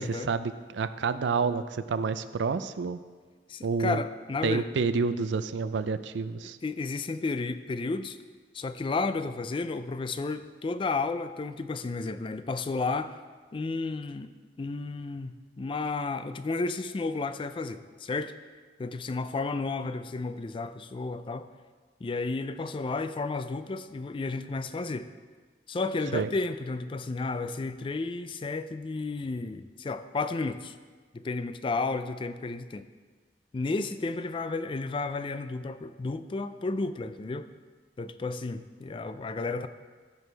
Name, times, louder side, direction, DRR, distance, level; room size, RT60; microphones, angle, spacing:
voice 1, 0.0-3.0 3.6-4.0 4.4-6.6 26.1-26.3, right 4 dB, 90° right, 12 dB, 0.4 m, -29 dB
voice 2, 3.5-4.7 6.6-8.2 8.5-13.1 13.5-18.3 18.8-21.5 22.0-25.1 25.7-30.8 31.1-32.9 33.5-37.5 38.0-39.7, left 3 dB, 30° left, 11 dB, 0.3 m, -32 dB
14.0 x 6.1 x 3.4 m, 1.5 s
head